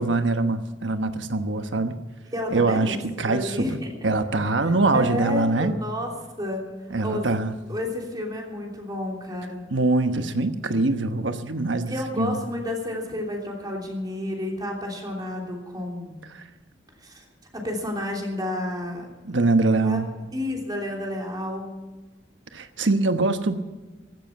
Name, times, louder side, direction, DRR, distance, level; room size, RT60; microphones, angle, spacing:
voice 1, 0.0-2.0 2.5-3.7 4.0-5.7 6.9-7.5 9.7-12.4 16.3-16.4 19.2-20.1 22.5-23.5, right 3 dB, 85° right, 8 dB, 1.1 m, -23 dB
voice 2, 2.3-3.0 3.3-4.1 4.6-6.7 7.0-7.3 7.7-9.6 11.8-16.2 17.0-17.2 17.5-19.4 19.8-20.0 20.3-21.8, left 1 dB, 20° right, 0 dB, 3.2 m, -31 dB
15.5 x 12.5 x 5.9 m, 1.2 s
head